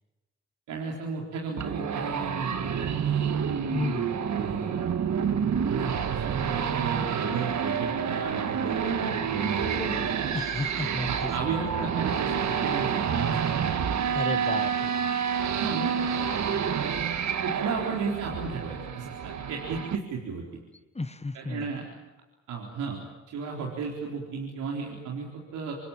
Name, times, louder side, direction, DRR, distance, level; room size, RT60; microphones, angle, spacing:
voice 1, 0.7-3.3 4.3-4.8 5.4-10.0 11.1-13.5 15.6-15.9 16.2-16.3 17.4-20.4 21.3-21.9 22.5-23.0 23.3-25.8, right 5 dB, 85° right, -1 dB, 4.2 m, -34 dB
sound 1, 1.6-20.0, right 7 dB, 70° right, 1.9 m, -28 dB
voice 2, 3.7-4.2 10.3-11.5 14.1-14.9 20.9-21.7, left 3 dB, 20° left, 12 dB, 1.5 m, -33 dB
27.0 x 21.0 x 9.0 m, 1.1 s
supercardioid pair, 55°, 30 cm